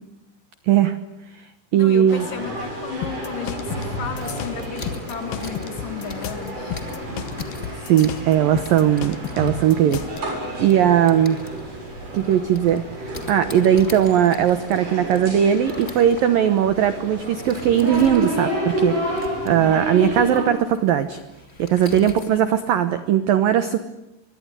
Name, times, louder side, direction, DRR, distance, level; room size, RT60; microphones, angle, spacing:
voice 1, 0.7-1.0 1.7-2.2 7.9-10.0 10.6-11.4 12.1-21.2 21.6-23.8, right 10 dB, 75° right, 11 dB, 2.1 m, -19 dB
voice 2, 1.7-6.8 9.8-10.0 19.5-19.9 22.3-22.4, left 7 dB, 50° left, 8 dB, 3.5 m, -34 dB
sound 1, 2.1-20.5, right 1 dB, 40° right, 8.9 m, -30 dB
sound 2, 3.0-10.2, left 9 dB, 70° left, 2.2 m, -33 dB
sound 3, 4.2-22.4, left 2 dB, 20° left, 1.8 m, -44 dB
24.5 x 24.0 x 9.8 m, 0.96 s
omnidirectional pair, 5.6 m